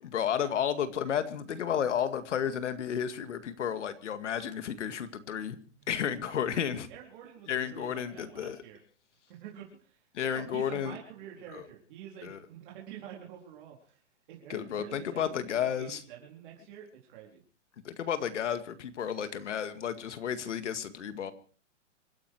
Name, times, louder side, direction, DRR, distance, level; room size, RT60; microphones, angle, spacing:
voice 1, 0.0-5.6 5.9-6.9 7.5-8.6 10.1-11.0 11.5-11.6 12.2-12.4 14.5-16.0 17.8-21.3, left 8 dB, 75° left, 2.1 m, -32 dB
voice 2, 6.9-8.8 9.3-10.0 10.3-14.0 14.3-17.4, right 10 dB, 45° right, 4.3 m, -47 dB
26.0 x 10.5 x 4.8 m
hypercardioid pair, 160°, 37 cm